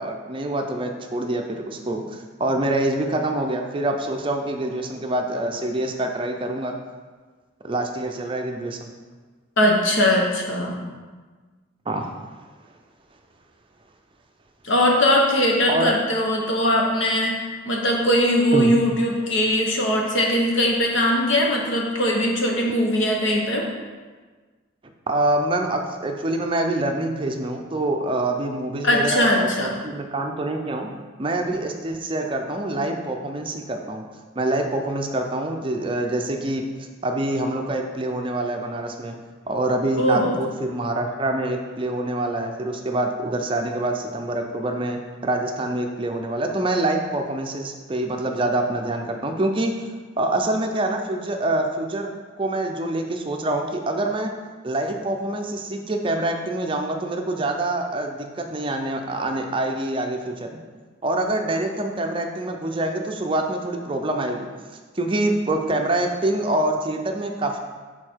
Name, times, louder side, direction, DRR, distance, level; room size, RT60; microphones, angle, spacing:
voice 1, 0.0-6.7 7.6-8.9 11.9-12.1 15.7-15.9 18.5-18.7 25.1-30.9 31.2-34.1 34.4-36.7 37.0-39.2 39.5-49.9 50.2-52.1 52.4-54.3 54.6-60.6 61.0-64.5 64.9-67.6, right 1 dB, 25° right, 3 dB, 0.5 m, -25 dB
voice 2, 9.6-10.8 14.6-17.3 17.7-23.7 28.8-29.7 40.0-40.3, left 1 dB, 70° left, -1 dB, 1.2 m, -20 dB
6.6 x 4.3 x 4.5 m, 1.4 s
head